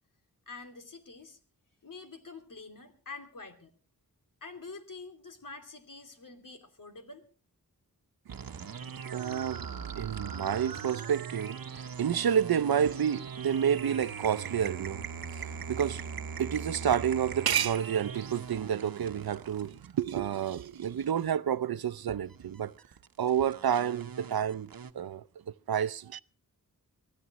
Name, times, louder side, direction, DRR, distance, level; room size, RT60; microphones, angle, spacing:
voice 1, 0.5-1.4 1.8-3.7 4.4-7.3, left 4 dB, 60° left, 2.8 m, -46 dB
sound 1, 8.3-21.4 22.3-24.9, right 6 dB, 75° right, 1.0 m, -41 dB
voice 2, 8.3-22.7 23.2-24.7 24.9-25.2 25.7-26.2, right 8 dB, 90° right, 0.6 m, -30 dB
24.0 x 14.5 x 3.0 m
wide cardioid pair, 90°, 36 cm